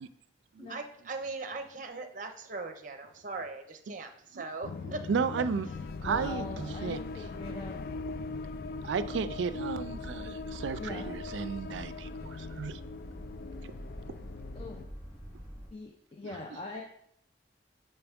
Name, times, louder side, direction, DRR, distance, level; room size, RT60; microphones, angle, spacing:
voice 1, 0.7-5.0, right 3 dB, 45° right, 0.7 m, -39 dB
sound 1, 4.6-14.9, left 4 dB, 55° left, 0.3 m, -41 dB
voice 2, 5.1-5.7 6.0-7.0 8.8-12.8, right 6 dB, 85° right, 0.3 m, -33 dB
sound 2, 5.7-15.7, equal, 20° right, 2.2 m, -46 dB
voice 3, 6.0-7.8 10.8-11.1 14.5-14.8 15.7-16.8, left 2 dB, 30° left, 0.7 m, -41 dB
6.9 x 5.5 x 3.5 m
head